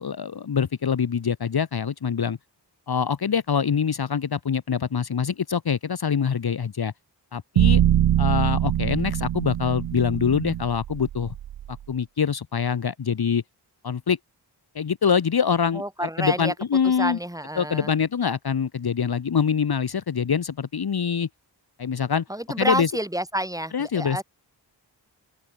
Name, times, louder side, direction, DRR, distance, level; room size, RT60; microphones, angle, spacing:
voice 1, 0.0-2.4 2.9-6.9 7.3-7.8 8.2-11.3 11.7-13.4 13.8-14.2 14.7-17.2 17.6-21.3 21.8-22.2 22.6-22.9 23.7-24.2, left 7 dB, 55° left, 1.5 m, -24 dB
sound 1, 7.6-11.8, right 11 dB, 75° right, 0.7 m, -23 dB
voice 2, 15.7-16.5 16.8-17.9 22.3-24.2, right 1 dB, 10° right, 6.9 m, -29 dB
open air
wide cardioid pair, 110°, 44 cm